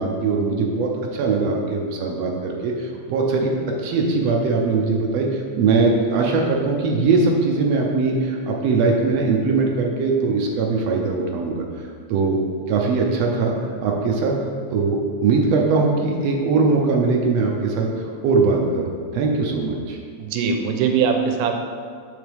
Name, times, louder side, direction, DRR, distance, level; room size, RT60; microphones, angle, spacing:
voice 1, 0.0-3.5 3.8-11.6 12.1-12.4 12.7-14.4 14.7-17.9 18.2-18.8 19.1-20.0, right 4 dB, 70° right, 0 dB, 1.6 m, -21 dB
voice 2, 20.2-21.5, right 6 dB, 90° right, 4 dB, 2.1 m, -21 dB
7.2 x 6.7 x 3.4 m, 2.1 s
omnidirectional pair, 3.5 m